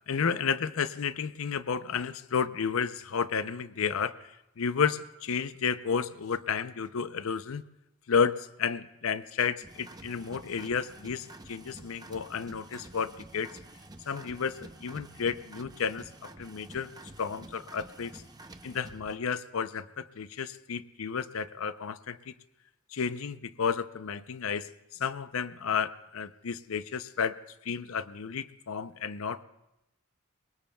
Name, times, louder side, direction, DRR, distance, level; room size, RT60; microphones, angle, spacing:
voice 1, 0.1-4.2 4.6-7.6 8.1-13.5 14.1-16.9 17.2-18.2 18.6-22.3 22.9-24.7 25.0-27.3 27.6-29.4, left 6 dB, 75° left, 14 dB, 0.6 m, -32 dB
sound 1, 9.6-19.2, right 2 dB, 20° right, 0.7 m, -49 dB
27.0 x 22.5 x 2.3 m, 0.90 s
head